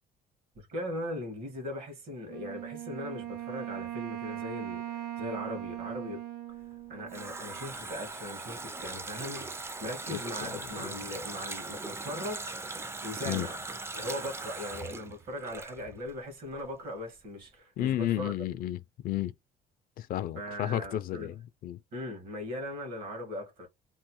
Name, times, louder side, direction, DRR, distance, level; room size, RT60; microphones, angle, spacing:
voice 1, 0.5-6.2 6.9-9.5 9.8-13.6 13.9-18.5 20.3-21.3 21.9-23.7, left 1 dB, 60° right, 1.5 m, -39 dB
Wind instrument woodwind instrument, 2.3-7.7, right 13 dB, 80° right, 0.5 m, -40 dB
Water tap faucet, 6.6-16.2 16.5-16.6, right 3 dB, 15° right, 0.4 m, -40 dB
voice 2, 17.8-19.3 20.0-21.8, left 13 dB, 60° left, 0.4 m, -32 dB
3.0 x 2.0 x 3.0 m
cardioid pair, 110°, 17 cm